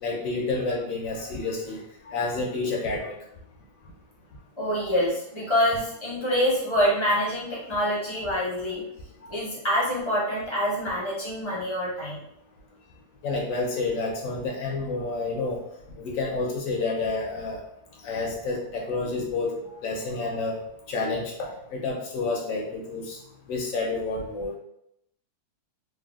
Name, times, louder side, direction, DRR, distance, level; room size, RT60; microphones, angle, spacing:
voice 1, 0.0-1.8 2.1-3.2 9.2-9.4 13.2-15.6 16.0-17.6 18.0-20.6 20.9-23.2 23.5-24.5, left 3 dB, 70° left, -1 dB, 0.9 m, -29 dB
voice 2, 4.6-8.8 9.3-12.2, equal, 30° left, -6 dB, 0.5 m, -26 dB
3.3 x 2.2 x 2.3 m, 0.78 s
omnidirectional pair, 1.7 m